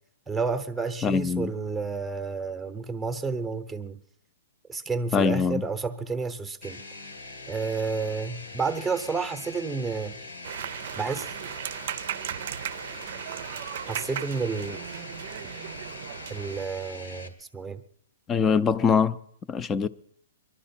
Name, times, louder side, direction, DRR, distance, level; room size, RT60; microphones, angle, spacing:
voice 1, 0.3-4.0 4.7-6.8 7.5-10.1 10.9-11.3 13.9-14.8 16.3-17.8, right 4 dB, 5° right, 0.9 m, -30 dB
voice 2, 1.0-1.5 5.1-5.6 18.3-19.2 19.5-19.9, left 6 dB, 15° left, 0.5 m, -23 dB
sound 1, 6.6-17.3, left 3 dB, 85° left, 2.3 m, -42 dB
sound 2, 10.4-16.7, right 11 dB, 55° right, 0.5 m, -36 dB
22.5 x 12.0 x 4.3 m
hypercardioid pair, 145°, 0 cm